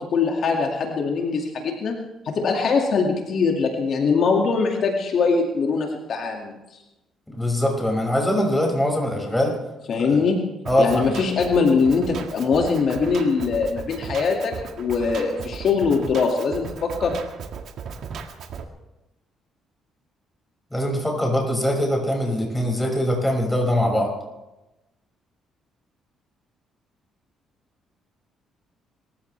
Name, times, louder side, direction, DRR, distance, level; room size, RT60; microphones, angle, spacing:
voice 1, 0.0-2.0 2.2-6.5 9.9-10.4 10.8-17.1, left 5 dB, 60° left, 1 dB, 2.2 m, -22 dB
voice 2, 7.3-9.5 10.7-11.1 20.7-24.1, left 1 dB, 5° left, 1 dB, 6.0 m, -22 dB
Drum kit, 10.6-18.6, right 6 dB, 65° right, 1.8 m, -36 dB
25.5 x 15.0 x 3.4 m, 0.98 s
cardioid pair, 100°, 0 cm